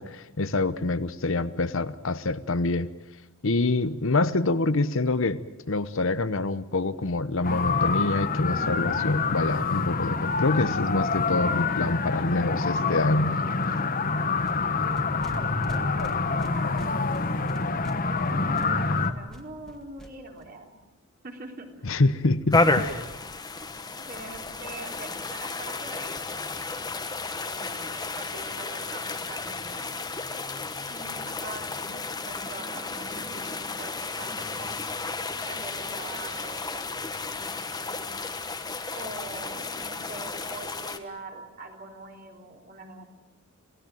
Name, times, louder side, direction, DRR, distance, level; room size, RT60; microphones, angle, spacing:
voice 1, 0.0-2.9 3.4-5.4 5.7-13.3 21.8-22.9, left 2 dB, 60° left, 13 dB, 0.9 m, -26 dB
sound 1, 7.4-19.1, left 4 dB, 40° left, 1.3 m, -26 dB
sound 2, 8.1-8.2 8.4-8.5 8.7-8.8 9.0-12.2 12.6-12.9 13.2-20.4, equal, ahead, 2.0 m, -49 dB
voice 2, 15.3-17.1 18.2-20.7 21.2-21.9 22.6-22.9 23.5-23.6 24.0-26.5 27.4-30.0 30.9-34.7 35.4-38.1 38.9-43.1, right 3 dB, 40° right, 2 dB, 3.6 m, -43 dB
sound 3, 22.5-41.0, left 3 dB, 20° left, 1.4 m, -32 dB
28.0 x 17.0 x 9.2 m, 1.1 s
head